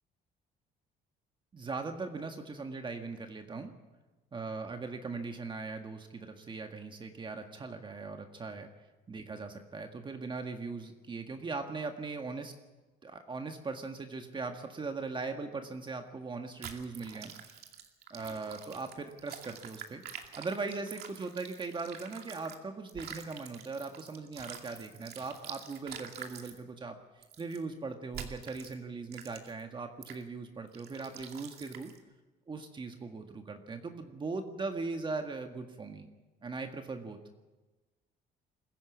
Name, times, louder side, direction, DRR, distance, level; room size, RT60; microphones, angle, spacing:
voice 1, 1.5-3.7 4.3-8.7 9.1-12.5 13.0-17.3 18.1-20.0 20.4-27.0 27.4-31.9 32.5-36.1 36.4-37.2, right 4 dB, 30° right, 5 dB, 1.8 m, -39 dB
sound 1, 16.6-22.6 22.9-26.6 27.2-27.6 28.1-28.7 29.1-29.6 30.0-30.2 30.7-32.0, right 8 dB, 70° right, 2.4 m, -47 dB
22.0 x 15.5 x 8.4 m, 1.2 s
cardioid pair, 110°, 17 cm